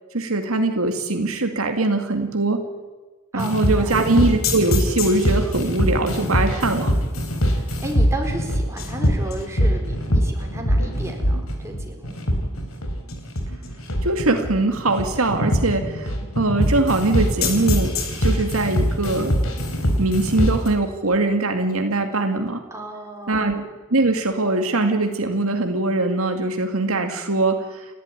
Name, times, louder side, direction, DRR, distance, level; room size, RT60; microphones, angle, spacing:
voice 1, 0.1-2.6 3.3-7.0 14.0-19.4 20.0-22.6 23.3-23.6 23.9-27.6, right 2 dB, 70° right, 5 dB, 2.1 m, -22 dB
voice 2, 3.3-3.9 7.4-12.1 22.7-23.5, right 1 dB, 15° right, 1 dB, 4.4 m, -34 dB
sound 1, 3.4-20.7, equal, 70° left, 4.4 m, -22 dB
30.0 x 12.5 x 9.9 m, 1.3 s
head